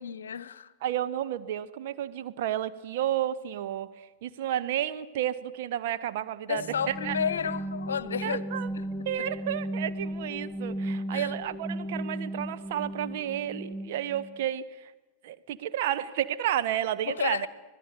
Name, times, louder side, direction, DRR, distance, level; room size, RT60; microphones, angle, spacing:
voice 1, 0.0-0.7 6.5-8.4 8.8-8.9 11.1-11.3 17.1-17.5, left 7 dB, 65° left, 1.0 m, -31 dB
voice 2, 0.8-7.2 8.2-8.7 9.0-14.9 15.2-17.5, right 11 dB, 50° right, 1.3 m, -31 dB
sound 1, 6.6-14.4, right 1 dB, 20° right, 1.6 m, -35 dB
25.5 x 17.5 x 9.4 m
figure-of-eight pair, 90°, 0 cm